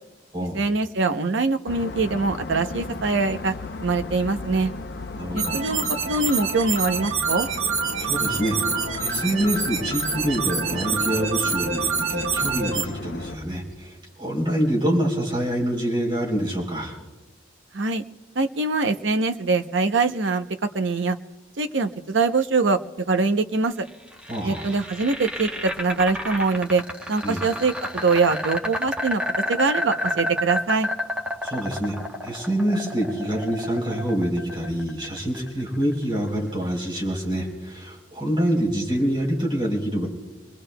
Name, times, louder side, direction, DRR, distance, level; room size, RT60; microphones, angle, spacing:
voice 1, 0.5-4.7 5.3-7.5 17.7-18.0 18.4-20.4 20.7-21.2 21.6-22.8 23.1-23.9 24.4-26.8 27.1-29.2 29.5-30.9, right 3 dB, 65° right, 9 dB, 0.7 m, -23 dB
sound 1, 1.7-13.4, left 3 dB, 55° left, 0.6 m, -35 dB
voice 2, 5.1-5.6 8.0-8.6 9.0-17.0 24.3-24.7 27.2-27.4 31.4-32.0 32.2-40.1, equal, 25° right, -3 dB, 3.4 m, -26 dB
sound 2, 5.4-12.8, right 5 dB, 80° right, 1.3 m, -26 dB
sound 3, 23.9-35.9, left 1 dB, 5° right, 0.9 m, -30 dB
28.0 x 20.5 x 2.2 m, 1.2 s
head